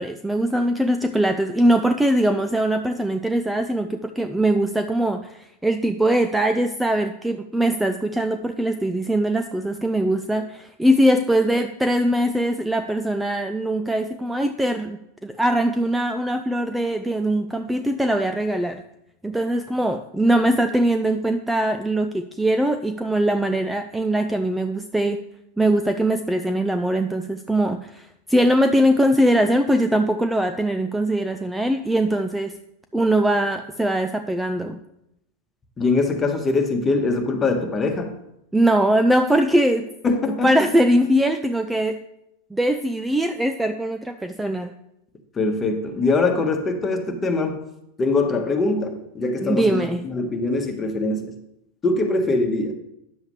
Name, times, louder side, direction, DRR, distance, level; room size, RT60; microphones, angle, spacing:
voice 1, 0.0-18.8 19.2-25.2 25.6-32.6 32.9-34.8 38.5-39.9 40.4-42.0 42.5-44.7 49.4-50.1, right 1 dB, 5° right, 8 dB, 0.4 m, -21 dB
voice 2, 35.8-38.1 40.0-40.5 45.4-47.6 48.0-49.9 50.1-51.3 51.8-52.7, left 3 dB, 20° left, 4 dB, 1.4 m, -22 dB
9.8 x 7.2 x 3.2 m, 0.82 s
hypercardioid pair, 100°, 0 cm